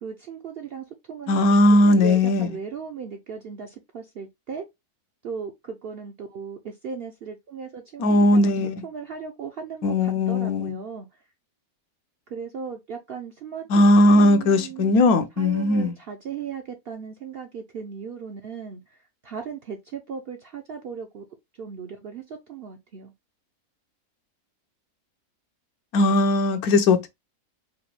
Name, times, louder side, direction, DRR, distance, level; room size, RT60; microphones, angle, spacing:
voice 1, 0.0-1.6 1.8-4.7 5.2-8.5 8.8-11.1 12.3-15.0 15.4-21.2 21.6-23.1, right 6 dB, 60° right, 0.6 m, -37 dB
voice 2, 1.3-2.5 8.0-8.8 9.8-10.8 13.7-15.9 25.9-27.1, left 1 dB, 75° left, 1.2 m, -18 dB
4.9 x 2.2 x 3.0 m
omnidirectional pair, 1.6 m